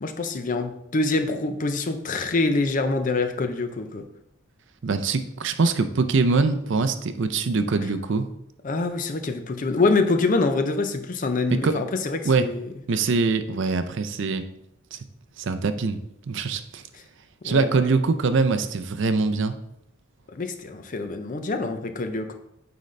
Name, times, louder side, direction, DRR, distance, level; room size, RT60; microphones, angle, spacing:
voice 1, 0.0-4.1 8.6-12.7 17.4-17.7 20.3-22.3, left 3 dB, 40° left, 7 dB, 0.5 m, -25 dB
voice 2, 4.8-8.3 11.5-11.8 12.2-12.5 12.9-14.4 14.9-15.0 15.4-16.0 16.3-16.8 17.4-19.6, right 4 dB, 60° right, 10 dB, 0.5 m, -23 dB
9.2 x 3.8 x 3.2 m, 0.79 s
head